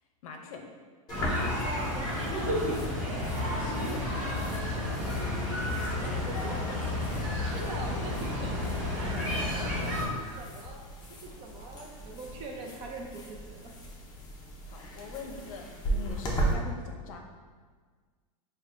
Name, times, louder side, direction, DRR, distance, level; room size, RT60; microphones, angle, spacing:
voice 1, 0.2-0.6 3.6-4.0 5.5-7.4 7.7-7.9 9.8-10.0 14.7-17.2, left 4 dB, 70° left, 3 dB, 0.6 m, -44 dB
sound 1, 1.1-16.5, right 1 dB, 20° left, 0.5 m, -38 dB
sound 2, 1.1-10.0, left 1 dB, 5° right, 1.2 m, -31 dB
voice 2, 1.6-3.2 4.6-5.3 5.6-6.5 7.4-10.8 11.2-13.7, right 3 dB, 30° right, 0 dB, 0.5 m, -43 dB
sound 3, 4.5-5.6 7.2-7.6 8.0-8.1 9.3-9.7 10.2-10.5 10.8-10.9, right 1 dB, 70° right, 1.0 m, -44 dB
5.9 x 2.2 x 2.5 m, 1.5 s
supercardioid pair, 145°, 18 cm